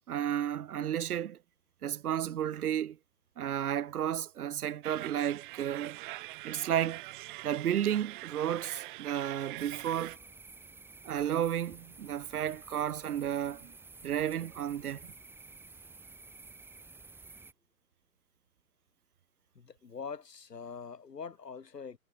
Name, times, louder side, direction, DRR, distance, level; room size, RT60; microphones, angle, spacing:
voice 1, 0.1-1.4 1.8-3.0 3.4-6.0 6.4-7.0 7.4-10.2 11.0-13.7 14.0-15.1, right 10 dB, 65° right, 0.8 m, -32 dB
sound 1, 4.8-10.2, right 21 dB, 30° right, 2.2 m, -44 dB
sound 2, 9.6-17.5, right 3 dB, 5° right, 2.9 m, -52 dB
voice 2, 19.6-22.0, left 5 dB, 80° left, 5.2 m, -43 dB
hypercardioid pair, 140°, 48 cm